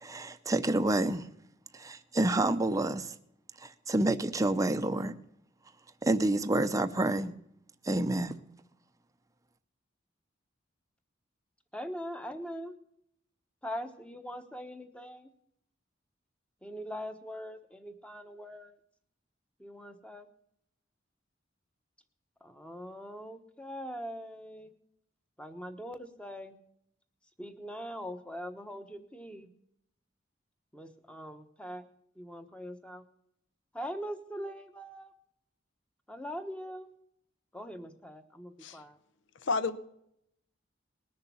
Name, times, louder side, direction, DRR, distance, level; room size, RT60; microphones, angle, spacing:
voice 1, 0.0-1.3 1.7-3.1 3.6-5.1 6.0-7.4 7.8-8.3, right 2 dB, 20° right, 9 dB, 0.6 m, -28 dB
voice 2, 11.7-12.7 13.6-15.3 16.6-18.8 19.6-20.3 22.4-24.7 25.4-26.6 27.4-29.5 30.7-31.9 32.1-33.0 33.7-35.1 36.1-36.9 37.5-39.0, equal, 5° left, 7 dB, 1.1 m, -42 dB
voice 3, 39.4-39.8, left 4 dB, 70° left, 14 dB, 0.7 m, -30 dB
20.0 x 6.7 x 7.1 m, 0.75 s
head